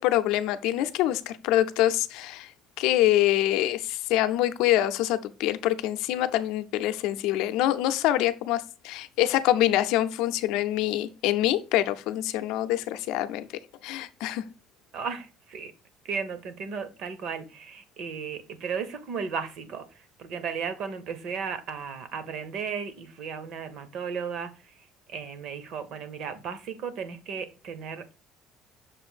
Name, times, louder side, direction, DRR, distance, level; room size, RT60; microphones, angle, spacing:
voice 1, 0.0-2.5 2.8-13.5 13.8-14.5, left 13 dB, 75° left, 0.5 m, -25 dB
voice 2, 14.9-15.7 16.0-24.5 25.1-28.2, right 6 dB, 50° right, 0.8 m, -35 dB
6.7 x 2.6 x 5.6 m
cardioid pair, 180°, 0 cm